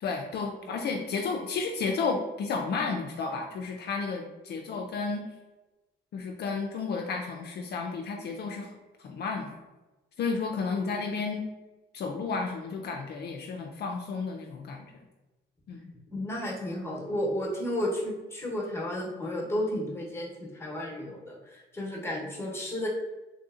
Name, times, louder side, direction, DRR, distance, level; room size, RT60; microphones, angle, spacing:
voice 1, 0.0-5.2 6.1-8.7 9.0-9.6 10.2-11.5 11.9-14.9 15.7-15.9, left 4 dB, 55° left, 2 dB, 0.4 m, -32 dB
voice 2, 16.1-22.9, left 1 dB, 10° left, -3 dB, 1.0 m, -33 dB
3.4 x 2.6 x 2.5 m, 1.1 s
cardioid pair, 90°, 20 cm